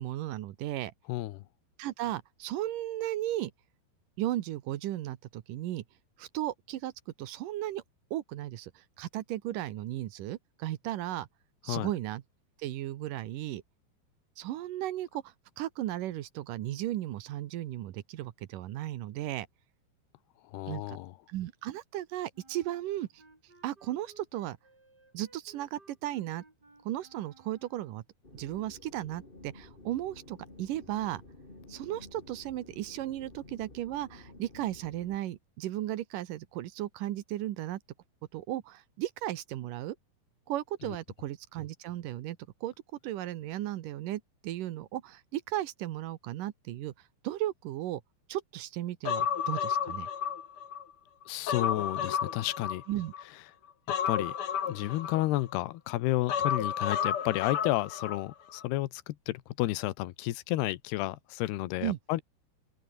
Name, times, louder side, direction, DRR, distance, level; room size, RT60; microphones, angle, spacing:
voice 1, 0.0-0.9 1.8-3.5 4.2-5.8 6.2-7.8 8.1-11.3 11.6-12.2 12.6-13.6 14.4-19.5 20.7-21.0 21.3-23.2 23.6-24.6 25.1-26.4 26.8-28.0 28.3-31.2 31.7-37.8 38.3-40.0 40.5-42.7 43.0-46.9 47.2-48.0 48.3-50.1 52.9-53.1 61.8-62.0, right 14 dB, 70° right, 2.3 m, -35 dB
voice 2, 1.1-1.4 11.7-11.9 20.5-21.1 51.3-52.8 54.1-54.4 54.6-62.2, left 17 dB, 80° left, 3.1 m, -31 dB
Wind instrument woodwind instrument, 22.3-28.1, right 2 dB, 25° right, 6.7 m, -60 dB
sound 1, 28.2-35.2, left 2 dB, 15° left, 3.2 m, -52 dB
Human voice, 49.0-50.8 51.2-53.2 53.9-55.6 56.3-58.2 58.5-58.6, left 8 dB, 50° left, 1.7 m, -32 dB
open air
omnidirectional pair, 4.8 m